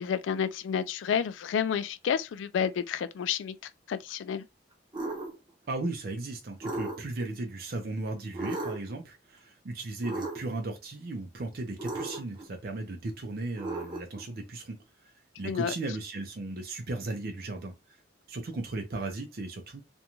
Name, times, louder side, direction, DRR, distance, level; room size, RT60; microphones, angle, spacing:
voice 1, 0.0-3.6 3.9-4.4 15.4-15.7, left 7 dB, 80° left, 0.3 m, -30 dB
sound 1, 4.9-5.4 6.6-7.3 8.3-9.0 10.0-10.7 11.8-12.5 13.6-14.2, right 2 dB, 25° right, 0.7 m, -35 dB
voice 2, 5.7-14.8 15.4-17.7 18.3-19.8, right 2 dB, 55° right, 0.5 m, -36 dB
2.5 x 2.2 x 2.9 m
head